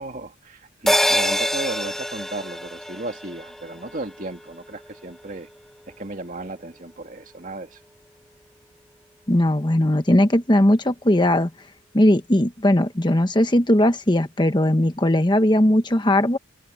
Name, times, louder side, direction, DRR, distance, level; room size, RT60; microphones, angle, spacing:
voice 1, 0.0-5.5 5.9-7.8, right 2 dB, 40° right, 2.2 m, -35 dB
sound 1, 0.9-5.6 5.9-6.0, equal, ahead, 2.7 m, -26 dB
voice 2, 9.3-11.5 11.9-16.4, left 1 dB, 20° left, 1.1 m, -18 dB
head